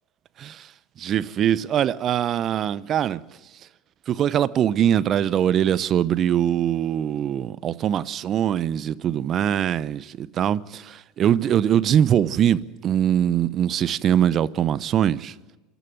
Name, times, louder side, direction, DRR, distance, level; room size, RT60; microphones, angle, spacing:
voice 1, 1.0-3.2 4.1-15.3, right 10 dB, 45° right, 0.7 m, -22 dB
28.0 x 12.5 x 9.3 m
hypercardioid pair, 80°, 0 cm